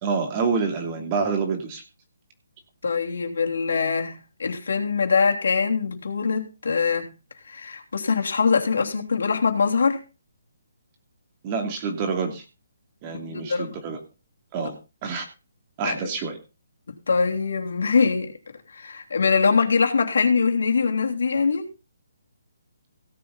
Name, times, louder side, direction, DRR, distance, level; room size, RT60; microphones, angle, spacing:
voice 1, 0.0-1.8 11.4-12.4 13.0-14.0 14.5-15.2 15.8-16.4, right 5 dB, 25° right, 2.8 m, -27 dB
voice 2, 2.8-7.1 7.4-10.0 13.3-13.8 15.8-16.1 16.9-18.3 18.7-21.7, left 5 dB, 75° left, 3.2 m, -23 dB
17.0 x 7.6 x 4.0 m
hypercardioid pair, 165°, 0 cm